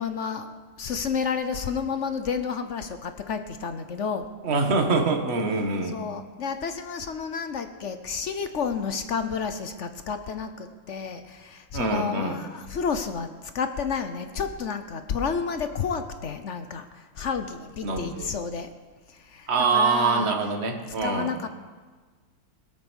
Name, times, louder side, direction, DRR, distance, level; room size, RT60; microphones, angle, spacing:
voice 1, 0.0-4.3 5.8-18.7 19.1-20.3 21.0-21.5, left 6 dB, 55° left, 9 dB, 0.9 m, -31 dB
voice 2, 4.4-5.9 11.7-12.4 17.8-18.3 19.5-21.3, right 4 dB, 35° right, 4 dB, 1.6 m, -24 dB
20.5 x 8.7 x 6.3 m, 1.4 s
omnidirectional pair, 2.1 m